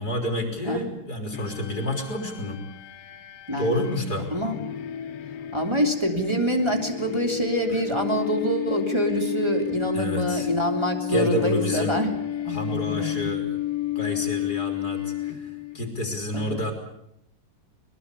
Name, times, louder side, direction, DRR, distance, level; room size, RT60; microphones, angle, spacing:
voice 1, 0.0-2.6 3.6-4.3 7.7-7.8 9.9-10.5 11.1-12.0 12.5-13.6 14.0-16.7, equal, 30° left, 3 dB, 3.9 m, -29 dB
sound 1, 1.3-15.8, left 13 dB, 60° left, 1.9 m, -32 dB
voice 2, 3.5-3.9 4.3-4.5 5.5-12.1 12.4-13.1 16.3-16.6, equal, 10° right, 3 dB, 2.6 m, -25 dB
22.0 x 21.5 x 8.3 m, 0.77 s
omnidirectional pair, 3.8 m